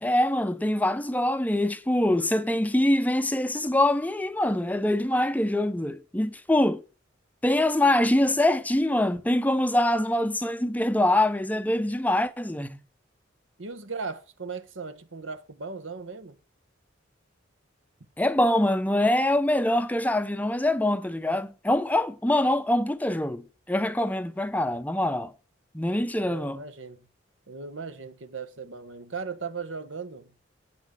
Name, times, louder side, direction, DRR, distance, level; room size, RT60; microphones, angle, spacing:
voice 1, 0.0-6.8 7.4-12.8 18.2-25.3 25.7-26.6, left 1 dB, 10° left, 0.6 m, -24 dB
voice 2, 13.6-16.4 26.2-27.1 27.5-30.3, right 4 dB, 85° right, 1.2 m, -37 dB
8.4 x 6.0 x 7.7 m
head